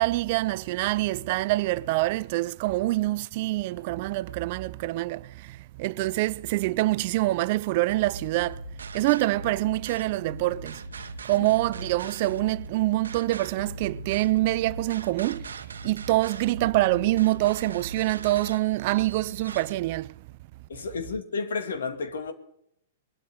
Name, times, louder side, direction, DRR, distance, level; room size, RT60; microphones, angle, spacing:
voice 1, 0.0-5.2 5.8-8.5 8.9-10.7 11.3-15.4 15.8-20.1, right 18 dB, 50° right, 0.4 m, -25 dB
sound 1, 7.9-19.7, right 2 dB, 80° right, 1.1 m, -40 dB
voice 2, 20.7-22.3, left 4 dB, 75° left, 2.3 m, -31 dB
21.5 x 12.5 x 3.7 m
hypercardioid pair, 110°, 0 cm